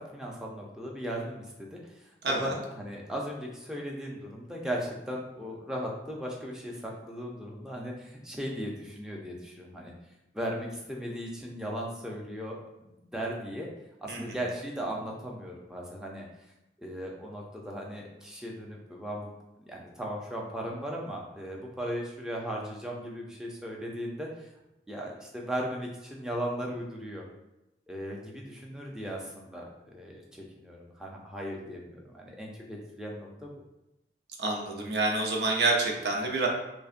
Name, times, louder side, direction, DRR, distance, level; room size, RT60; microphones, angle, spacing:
voice 1, 0.0-9.9 10.3-12.6 13.0-13.7 14.0-16.3 16.8-19.3 19.7-24.5 24.9-27.3 27.9-33.5, equal, 5° right, -2 dB, 0.5 m, -37 dB
voice 2, 2.2-2.5 14.1-14.4 34.4-36.5, right 2 dB, 70° right, 0 dB, 0.7 m, -28 dB
5.2 x 2.1 x 2.5 m, 0.93 s
head